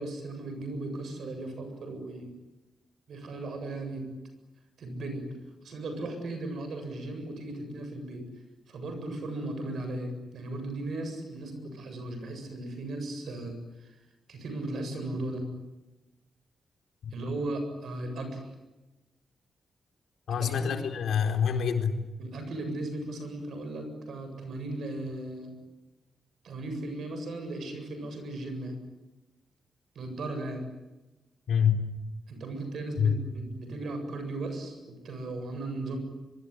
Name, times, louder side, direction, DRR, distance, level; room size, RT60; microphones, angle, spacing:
voice 1, 0.0-2.3 3.1-4.0 4.8-5.2 5.6-8.2 8.7-13.9 14.3-15.4 17.1-18.5 20.3-20.8 22.2-25.5 26.4-28.7 29.9-30.6 32.3-36.0, right 2 dB, 60° right, 7 dB, 7.8 m, -36 dB
voice 2, 20.3-22.0 31.5-31.9 33.0-33.2, left 7 dB, 75° left, 4 dB, 4.1 m, -26 dB
25.0 x 23.5 x 9.9 m, 1.1 s
wide cardioid pair, 170°, 0 cm